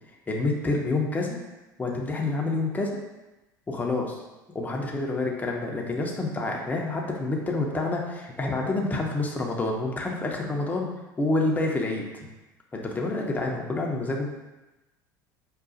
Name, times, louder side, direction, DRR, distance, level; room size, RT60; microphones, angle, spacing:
voice 1, 0.3-1.4 1.8-3.0 3.7-4.2 4.5-10.9 11.2-12.3 12.7-14.3, left 2 dB, 15° left, 0 dB, 0.6 m, -28 dB
4.8 x 2.3 x 2.6 m, 1.1 s
hypercardioid pair, 75°, 10 cm